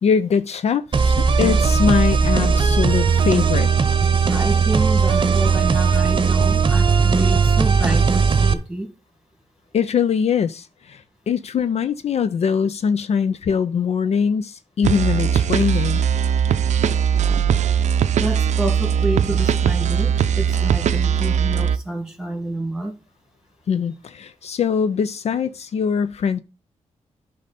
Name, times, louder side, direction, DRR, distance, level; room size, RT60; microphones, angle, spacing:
voice 1, 0.0-3.7 9.7-16.0 23.7-26.4, left 6 dB, 65° left, 0.4 m, -22 dB
sound 1, 0.9-8.5, right 5 dB, 40° right, 0.8 m, -17 dB
voice 2, 4.3-8.9 18.2-22.9, right 1 dB, 5° right, 1.8 m, -28 dB
sound 2, 14.8-21.8, right 8 dB, 80° right, 0.5 m, -19 dB
9.6 x 5.4 x 4.1 m
cardioid pair, 65°, 12 cm